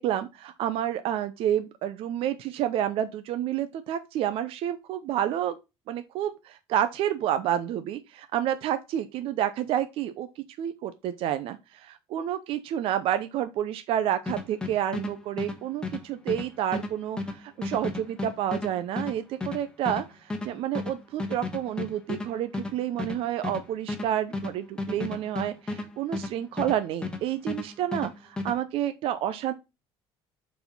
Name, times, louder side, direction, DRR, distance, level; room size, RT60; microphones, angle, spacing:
voice 1, 0.0-5.6 5.9-29.5, right 11 dB, 60° right, 0.7 m, -29 dB
sound 1, 14.3-27.2 27.5-28.6, left 3 dB, 10° left, 1.5 m, -33 dB
6.9 x 4.2 x 5.3 m
cardioid pair, 125°, 11 cm